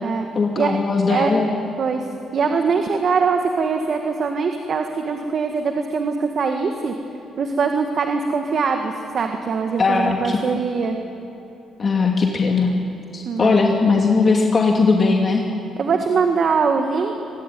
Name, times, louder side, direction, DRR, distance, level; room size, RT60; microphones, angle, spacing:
voice 1, 0.3-1.5 9.8-10.4 11.8-12.7 13.1-15.4, left 4 dB, 40° left, 1 dB, 2.7 m, -18 dB
voice 2, 2.3-6.9 7.4-11.0 13.3-13.6 15.8-17.1, right 5 dB, 55° right, 4 dB, 1.8 m, -22 dB
24.0 x 21.5 x 9.3 m, 2.9 s
cardioid pair, 90°, 0 cm